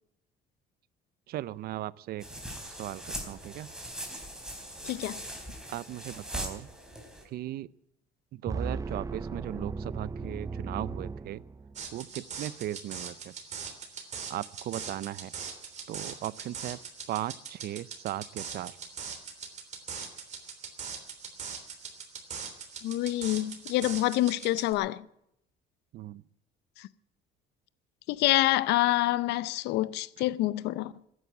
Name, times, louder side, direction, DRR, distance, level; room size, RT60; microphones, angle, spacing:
voice 1, 1.3-2.2 2.8-3.7 5.7-6.7 7.2-7.7 8.3-11.4 11.9-13.3 14.3-15.3 15.9-16.8 17.1-18.8 25.9-26.2, right 14 dB, 65° right, 0.6 m, -37 dB
sound 1, 2.2-7.2, right 1 dB, 5° right, 4.1 m, -40 dB
voice 2, 4.8-5.2 22.8-25.0 28.1-30.9, left 16 dB, 85° left, 0.6 m, -27 dB
sound 2, 8.5-11.9, right 4 dB, 20° right, 0.6 m, -36 dB
sound 3, 11.8-24.7, right 6 dB, 45° right, 3.3 m, -41 dB
14.5 x 10.5 x 9.4 m
cardioid pair, 110°, 17 cm